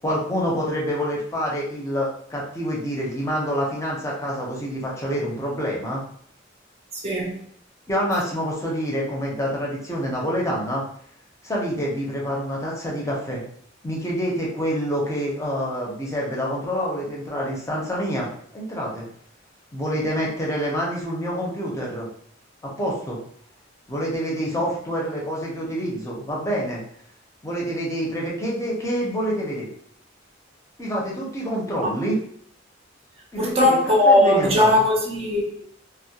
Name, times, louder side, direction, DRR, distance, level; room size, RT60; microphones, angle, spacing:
voice 1, 0.0-6.0 7.9-10.8 11.4-13.4 13.8-19.0 19.7-22.1 22.6-23.2 23.9-26.8 27.4-29.7 30.8-32.2 33.3-33.8 34.1-34.7, equal, 15° left, 0.5 m, -27 dB
voice 2, 6.9-7.4 33.4-35.6, left 1 dB, 30° right, 0.4 m, -19 dB
2.2 x 2.1 x 2.7 m
head